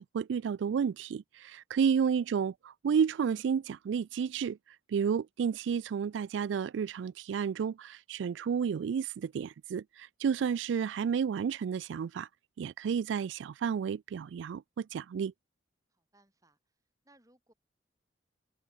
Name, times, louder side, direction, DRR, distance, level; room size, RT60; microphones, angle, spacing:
voice 1, 0.0-4.6 4.9-12.3 12.6-15.3, right 7 dB, 80° right, 0.3 m, -31 dB
voice 2, 1.7-2.1 15.9-16.7 17.0-17.5, right 1 dB, 20° right, 7.8 m, -67 dB
head